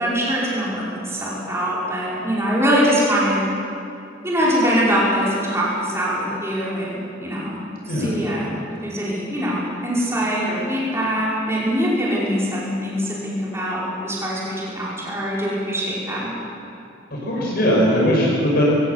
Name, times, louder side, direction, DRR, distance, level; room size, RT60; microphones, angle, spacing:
voice 1, 0.0-3.4 4.2-7.6 7.8-8.5 8.8-16.3, equal, 15° right, -7 dB, 5.1 m, -23 dB
voice 2, 7.9-8.2 17.1-18.6, equal, 50° left, -4 dB, 6.2 m, -19 dB
22.5 x 17.0 x 8.3 m, 2.6 s
head